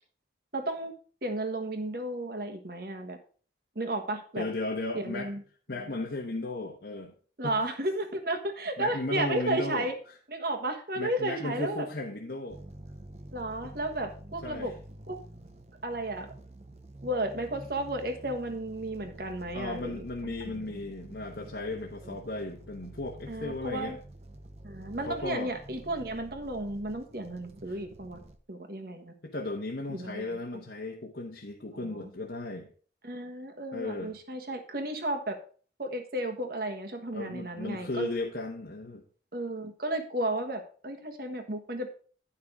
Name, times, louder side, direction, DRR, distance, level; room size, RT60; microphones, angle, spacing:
voice 1, 0.5-0.9 1.2-3.2 3.7-4.5 4.9-5.4 5.7-5.9 7.4-10.0 10.3-11.9 13.3-14.7 15.1-15.2 15.8-16.3 17.0-20.8 22.0-22.2 23.3-24.0 24.6-28.2 28.5-29.1 29.9-30.4 31.7-32.1 33.0-35.4 35.8-38.1 39.3-41.9, right 1 dB, 55° right, 5 dB, 1.4 m, -33 dB
voice 2, 4.4-5.3 5.7-7.1 7.4-7.6 8.8-9.9 11.0-12.6 13.6-13.7 14.4-14.7 19.5-24.0 25.0-25.5 29.2-32.7 33.7-34.1 37.1-39.0, left 2 dB, 65° left, -1 dB, 1.2 m, -35 dB
sound 1, 12.5-28.4, right 1 dB, 35° right, 0.8 m, -48 dB
10.0 x 5.8 x 4.7 m, 0.42 s
head